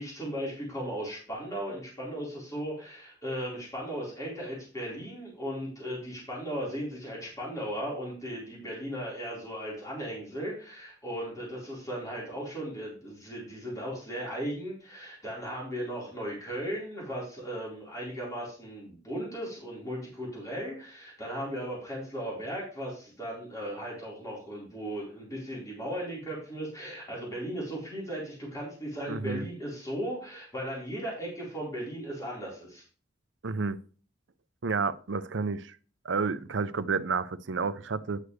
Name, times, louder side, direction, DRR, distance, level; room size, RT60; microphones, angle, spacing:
voice 1, 0.0-32.8, equal, 20° left, 4.3 m, -37 dB
voice 2, 29.1-29.5 33.4-33.8 34.6-35.8 36.0-38.2, right 4 dB, 70° right, 0.6 m, -30 dB
9.8 x 8.0 x 3.2 m
head